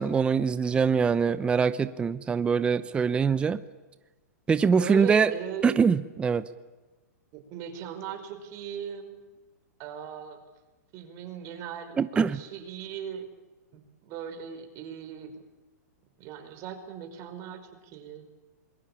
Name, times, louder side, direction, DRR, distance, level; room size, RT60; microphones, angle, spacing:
voice 1, 0.0-3.6 4.5-5.3 5.6-6.4 12.0-12.4, right 6 dB, 10° right, 13 dB, 0.8 m, -23 dB
voice 2, 4.7-5.7 7.3-9.1 9.8-10.4 10.9-11.9 12.3-13.2 13.7-15.4 16.2-18.3, right 8 dB, 35° right, 7 dB, 5.1 m, -38 dB
26.5 x 22.0 x 8.7 m, 1.2 s
hypercardioid pair, 140°, 9 cm